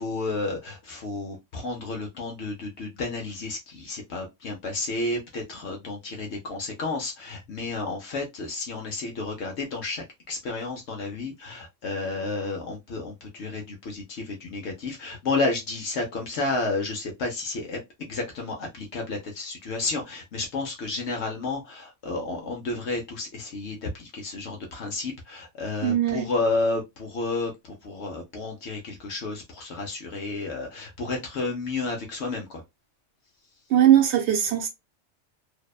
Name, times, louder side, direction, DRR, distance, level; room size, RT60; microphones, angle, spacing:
voice 1, 0.0-27.5 27.8-32.6, left 3 dB, 70° left, 0.9 m, -31 dB
voice 2, 25.8-26.3 33.7-34.7, right 11 dB, 70° right, 0.9 m, -20 dB
2.7 x 2.1 x 2.3 m
omnidirectional pair, 1.2 m